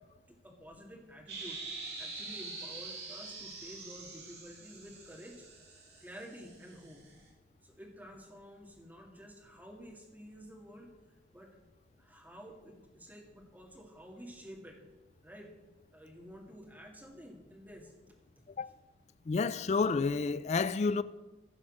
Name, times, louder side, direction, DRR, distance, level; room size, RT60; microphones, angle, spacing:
voice 1, 0.3-1.6 2.0-5.5 6.0-7.0 7.6-10.9 11.3-11.5 12.0-14.8 15.2-15.5 15.9-17.9, equal, 10° right, 2.0 m, -51 dB
sound 1, 1.3-7.1, right 3 dB, 65° right, 3.5 m, -45 dB
voice 2, 19.3-21.0, left 4 dB, 40° left, 0.4 m, -29 dB
15.5 x 5.4 x 6.3 m
head